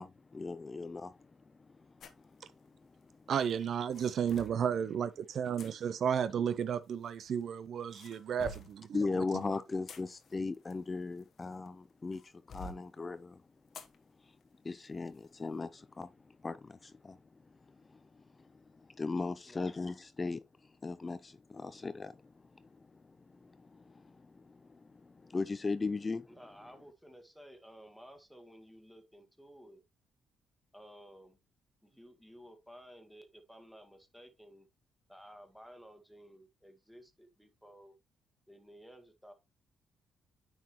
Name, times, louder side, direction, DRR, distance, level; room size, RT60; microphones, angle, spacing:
voice 1, 0.0-3.3 8.9-13.5 14.2-14.4 14.6-26.4, left 3 dB, 25° left, 0.4 m, -39 dB
sound 1, 2.0-2.2 3.4-4.6 5.6-5.7 6.8-7.5 7.9-8.8 9.6-11.7 12.1-12.8 13.7-13.9 14.4-14.5 15.1-15.3, left 3 dB, 60° left, 1.0 m, -49 dB
voice 2, 3.3-9.0, right 8 dB, 60° right, 0.5 m, -33 dB
voice 3, 19.4-19.8 26.3-29.8 30.7-31.4 31.8-34.7 35.1-38.0 38.5-39.3, equal, ahead, 1.6 m, -55 dB
9.3 x 4.7 x 3.0 m
cardioid pair, 90°, 0 cm